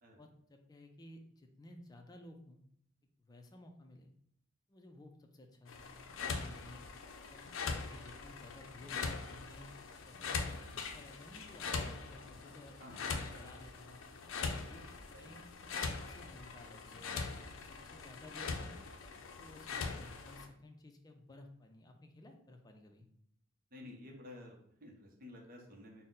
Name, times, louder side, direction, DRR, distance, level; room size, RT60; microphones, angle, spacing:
voice 1, 0.2-2.6 3.2-4.1 4.7-6.0 6.3-6.9 7.3-7.4 7.7-9.7 10.1-10.4 10.8-14.0 14.4-15.4 16.1-18.7 19.4-23.1, left 1 dB, 20° left, 4 dB, 0.4 m, -56 dB
sound 1, 5.7-20.5, left 4 dB, 80° left, 0.5 m, -42 dB
voice 2, 23.7-26.0, left 1 dB, 45° right, 0 dB, 0.7 m, -52 dB
4.1 x 2.1 x 3.8 m, 0.68 s
head